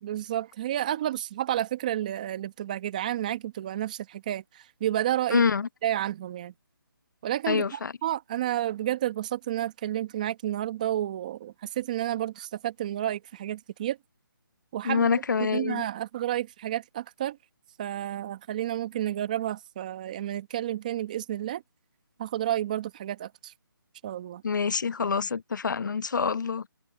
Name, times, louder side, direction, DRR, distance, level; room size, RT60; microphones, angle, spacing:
voice 1, 0.0-5.4 5.8-6.5 7.2-14.0 14.7-15.2 15.5-17.4 17.8-21.6 22.2-23.5 24.0-24.4, right 12 dB, 20° right, 1.3 m, -31 dB
voice 2, 5.3-5.7 7.5-7.9 14.8-15.8 24.4-26.7, left 5 dB, 55° left, 0.9 m, -26 dB
hypercardioid pair, 170°, 12 cm